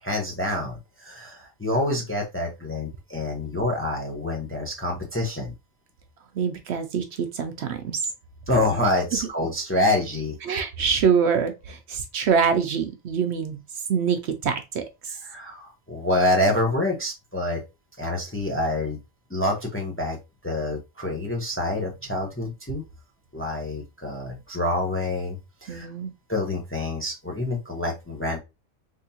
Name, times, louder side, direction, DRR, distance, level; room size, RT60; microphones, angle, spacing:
voice 1, 0.0-5.5 8.5-10.4 15.2-17.6 18.0-19.0 19.3-20.2 20.4-22.8 23.3-25.9 26.3-28.4, left 1 dB, 15° left, 0.6 m, -27 dB
voice 2, 6.3-8.0 10.4-13.6 13.9-15.2 25.7-26.1, right 6 dB, 65° right, 0.8 m, -25 dB
3.6 x 2.7 x 2.7 m
omnidirectional pair, 1.3 m